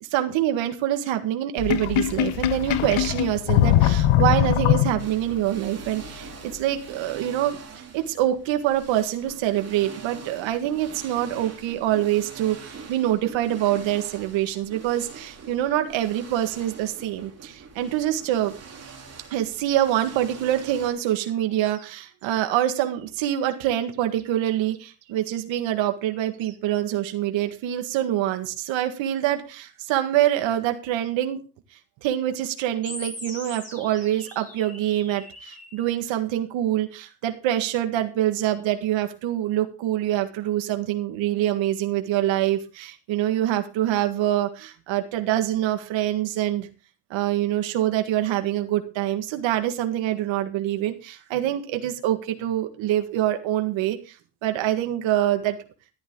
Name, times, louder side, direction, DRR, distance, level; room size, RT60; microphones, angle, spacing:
voice 1, 0.1-18.5 19.3-31.4 32.0-46.7 47.1-54.2 54.4-55.6, right 12 dB, 75° right, 7 dB, 1.8 m, -25 dB
Sink (filling or washing), 1.6-5.3, left 12 dB, 80° left, 1.2 m, -21 dB
sound 1, 5.0-20.9, right 5 dB, 30° right, 3.3 m, -44 dB
sound 2, 32.8-35.8, left 1 dB, 15° left, 7.1 m, -40 dB
13.0 x 11.0 x 3.7 m, 0.33 s
cardioid pair, 145°, 47 cm